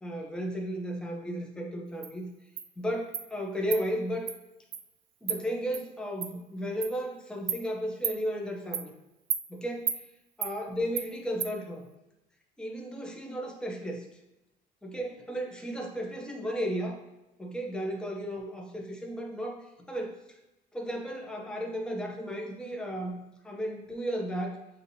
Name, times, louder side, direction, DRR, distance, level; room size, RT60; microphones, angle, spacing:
voice 1, 0.0-2.3 2.8-4.3 5.2-8.9 9.5-10.0 10.4-11.8 12.6-14.1 14.8-17.0 17.4-20.2 20.7-24.6, equal, 5° left, 1 dB, 0.7 m, -34 dB
Insect, 2.0-2.1 2.6-2.7 3.1-3.3 3.7-3.8 4.3-4.4 4.7-4.8 5.3-5.4 5.7-5.8 6.2-6.3 6.8-6.9 7.5-7.6 8.0-8.2 8.7-8.9 9.3-9.4 9.9-10.0 10.4-10.5 11.0-11.1 11.4-11.5, right 8 dB, 50° right, 0.4 m, -32 dB
6.8 x 2.8 x 2.7 m, 0.95 s
cardioid pair, 110°, 17 cm